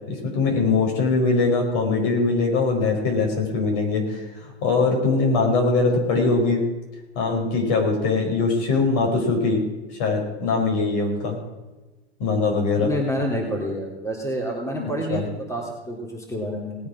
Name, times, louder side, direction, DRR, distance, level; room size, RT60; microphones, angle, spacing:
voice 1, 0.1-6.6 7.2-9.6 10.0-11.4 12.2-12.9 14.8-15.3, left 3 dB, 55° left, 2 dB, 5.4 m, -22 dB
voice 2, 12.8-16.8, equal, 10° left, -1 dB, 3.6 m, -28 dB
19.0 x 8.6 x 6.0 m, 1.1 s
hypercardioid pair, 100°, 32 cm